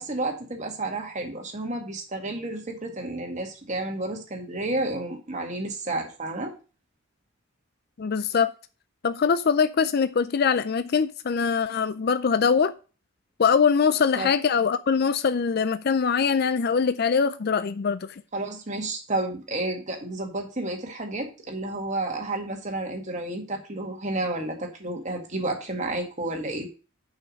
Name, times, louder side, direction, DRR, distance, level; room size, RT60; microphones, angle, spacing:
voice 1, 0.0-6.5 14.2-14.3 18.3-26.7, right 2 dB, 35° right, 2.0 m, -31 dB
voice 2, 8.0-8.5 9.0-12.7 13.4-18.2, left 6 dB, 50° left, 0.4 m, -23 dB
6.5 x 6.0 x 6.3 m
head